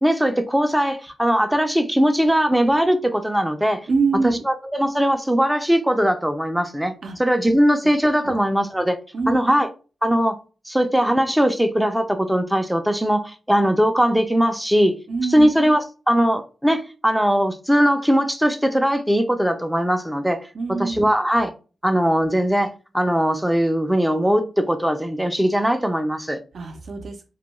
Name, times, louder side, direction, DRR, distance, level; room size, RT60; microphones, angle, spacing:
voice 1, 0.0-3.9 4.2-9.0 9.3-9.7 10.0-10.4 10.7-15.0 15.3-21.5 21.8-26.4, equal, 5° right, 0.4 m, -20 dB
voice 2, 3.9-4.4 7.0-7.2 8.2-8.4 9.1-9.4 15.1-15.5 20.5-21.0 26.5-27.3, right 4 dB, 65° right, 0.5 m, -24 dB
2.2 x 2.2 x 3.0 m
cardioid pair, 90°, 0 cm